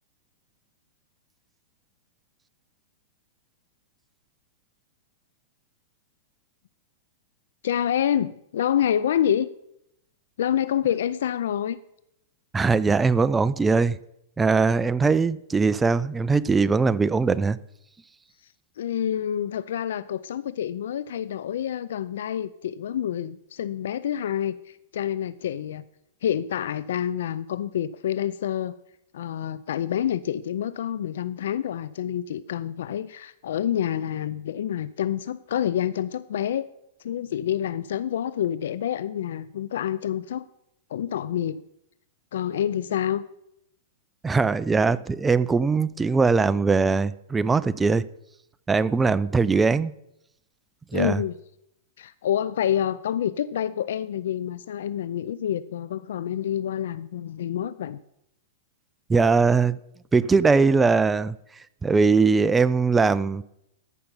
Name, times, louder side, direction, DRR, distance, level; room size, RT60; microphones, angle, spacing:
voice 1, 7.6-9.5 10.4-11.8 18.8-25.8 26.2-28.7 29.1-36.7 37.0-40.5 40.9-41.6 42.3-43.3 50.9-51.4 52.0-58.0, left 10 dB, 75° left, 0.4 m, -27 dB
voice 2, 12.5-14.0 14.4-17.6 44.2-48.1 48.7-49.9 50.9-51.2 59.1-59.8 60.1-61.3 61.8-63.4, right 4 dB, 10° right, 0.3 m, -21 dB
13.5 x 5.8 x 5.5 m
hypercardioid pair, 145°, 0 cm